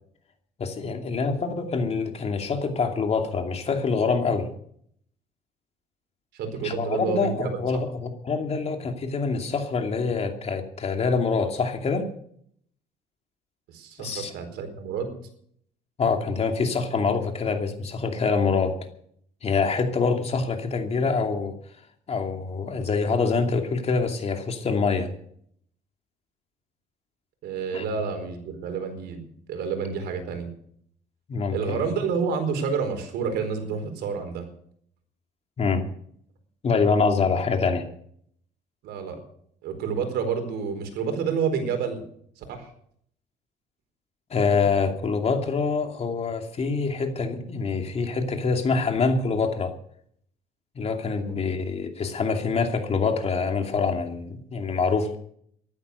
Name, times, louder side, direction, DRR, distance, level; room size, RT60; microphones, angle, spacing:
voice 1, 0.6-4.5 6.6-12.1 14.0-14.3 16.0-18.8 19.4-21.5 22.1-25.1 27.7-27.8 31.3-31.8 35.6-35.8 36.6-37.8 44.3-49.7 50.8-55.2, left 4 dB, 40° left, 4 dB, 2.7 m, -25 dB
voice 2, 6.3-7.6 13.7-15.2 27.4-30.5 31.5-34.5 38.8-39.2 39.6-42.0 42.4-42.7 51.2-51.4, right 6 dB, 80° right, 7 dB, 4.4 m, -29 dB
14.5 x 12.5 x 6.7 m, 0.64 s
cardioid pair, 110°, 17 cm